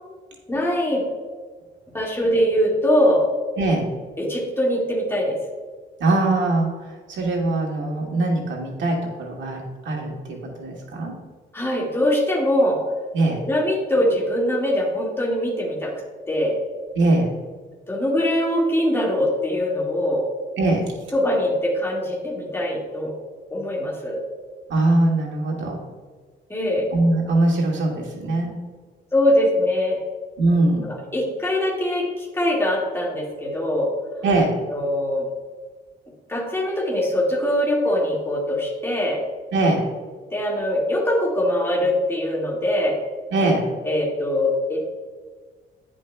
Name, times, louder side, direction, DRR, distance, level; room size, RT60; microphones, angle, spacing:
voice 1, 0.5-1.0 1.9-3.2 4.2-5.4 11.5-12.8 13.4-15.9 16.3-16.6 17.9-20.3 21.1-23.1 23.5-24.2 26.5-26.9 29.1-30.0 30.8-33.9 34.7-35.3 36.3-39.2 40.3-43.0 43.8-44.8, left 1 dB, 10° left, -3 dB, 1.9 m, -22 dB
voice 2, 3.6-3.9 6.0-11.1 13.1-13.4 16.9-17.3 20.6-20.9 24.7-25.8 26.9-28.5 30.4-30.8 34.2-34.5 39.5-39.9 43.3-43.6, right 2 dB, 70° right, 0 dB, 1.8 m, -21 dB
10.0 x 5.1 x 2.2 m, 1.4 s
cardioid pair, 90°, 20 cm